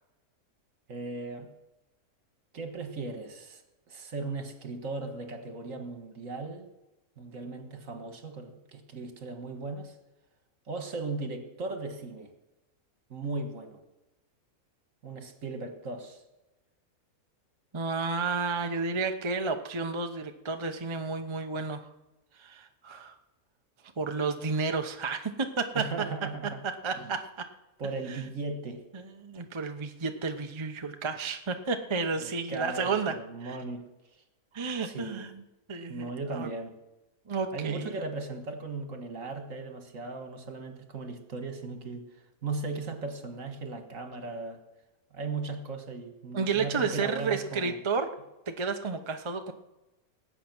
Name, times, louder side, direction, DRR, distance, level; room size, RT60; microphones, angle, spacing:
voice 1, 0.9-1.5 2.5-3.6 3.9-6.7 7.2-10.0 10.7-12.3 13.1-13.8 15.0-16.2 25.8-26.6 26.9-27.1 27.8-28.8 32.2-33.8 34.8-35.3 35.9-36.7 37.5-42.1 42.4-44.6 45.1-47.8, right 3 dB, 60° right, 6 dB, 1.9 m, -37 dB
voice 2, 17.7-21.9 22.4-23.1 24.0-25.8 26.8-27.2 28.1-28.2 28.9-33.1 33.4-33.6 34.5-35.4 35.7-36.5 37.3-38.0 46.3-48.1 48.5-49.5, right 4 dB, 25° right, 6 dB, 0.8 m, -31 dB
18.5 x 8.4 x 6.1 m, 1.0 s
omnidirectional pair, 1.6 m